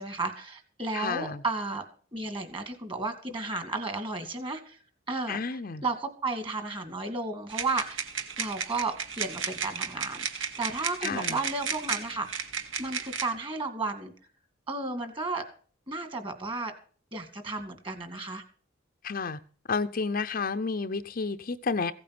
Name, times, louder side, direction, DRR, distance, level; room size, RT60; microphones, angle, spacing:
voice 1, 0.0-1.8 2.1-4.8 5.1-8.1 8.4-12.4 12.8-14.1 14.7-15.5 15.9-16.7 17.1-18.4, right 3 dB, 25° right, 8 dB, 2.3 m, -33 dB
voice 2, 0.9-1.4 5.3-5.8 11.0-11.4 19.0-19.4 19.7-21.9, left 4 dB, 45° left, 10 dB, 0.6 m, -31 dB
sound 1, 7.5-13.3, right 6 dB, 65° right, 1.6 m, -34 dB
16.0 x 8.5 x 6.0 m, 0.43 s
head